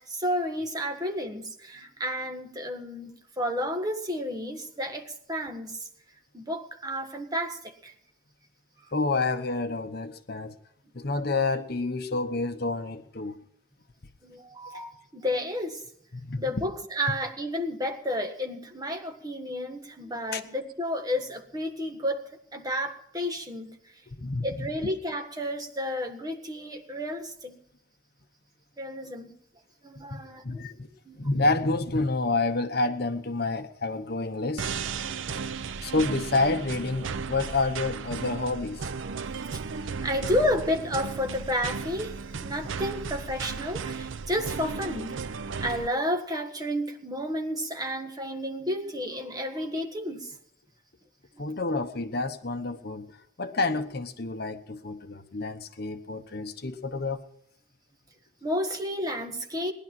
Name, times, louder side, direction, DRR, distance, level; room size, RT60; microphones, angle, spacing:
voice 1, 0.0-5.9 6.3-7.9 8.8-8.9 14.2-15.8 16.4-23.9 24.4-27.6 28.8-29.4 29.8-30.7 31.0-31.2 35.0-35.2 39.4-39.6 40.0-50.4 58.4-59.7, equal, 20° right, 4 dB, 1.5 m, -31 dB
voice 2, 8.9-10.5 10.9-13.4 14.7-14.8 16.1-16.4 20.3-20.4 24.1-24.5 30.1-30.9 31.1-34.7 35.8-38.9 51.4-53.1 53.4-57.2, left 3 dB, 55° left, 9 dB, 1.0 m, -29 dB
sound 1, 34.6-45.9, right 5 dB, 80° right, 0.6 m, -35 dB
19.5 x 11.0 x 6.0 m, 0.72 s
head